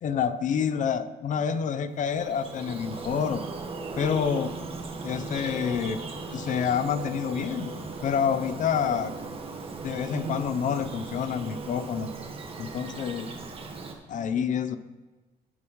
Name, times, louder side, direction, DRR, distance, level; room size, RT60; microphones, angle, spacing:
voice 1, 0.0-3.4 4.0-4.5 5.0-6.0 6.3-7.7 8.0-9.1 9.8-12.1 12.6-13.3 14.1-14.8, left 7 dB, 50° left, 13 dB, 0.6 m, -28 dB
Bird vocalization bird call bird song, 1.9-13.9, right 3 dB, 35° right, 1.5 m, -37 dB
19.0 x 7.1 x 3.1 m, 1.3 s
cardioid pair, 110°, 17 cm